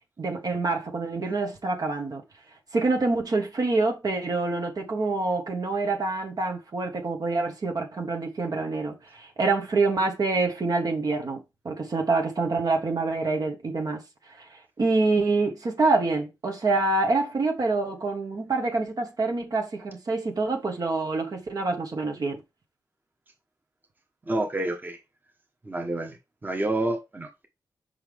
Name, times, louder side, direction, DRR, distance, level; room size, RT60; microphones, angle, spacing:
voice 1, 0.2-2.2 2.7-14.0 14.4-14.5 14.8-22.4, right 3 dB, 60° right, 1.5 m, -26 dB
voice 2, 24.3-25.0 25.6-26.2 26.4-27.5, right 2 dB, 25° right, 1.3 m, -28 dB
5.7 x 5.5 x 3.5 m
cardioid pair, 80°, 7 cm